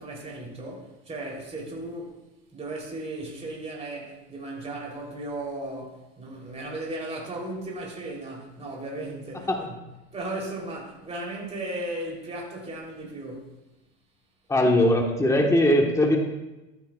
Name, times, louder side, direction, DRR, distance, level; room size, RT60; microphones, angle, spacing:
voice 1, 0.0-2.2 2.5-9.7 10.1-13.5, right 2 dB, 20° right, 3.5 m, -36 dB
voice 2, 14.5-16.2, left 1 dB, 10° left, 1.4 m, -20 dB
14.0 x 9.1 x 2.4 m
hypercardioid pair, 100°, 35 cm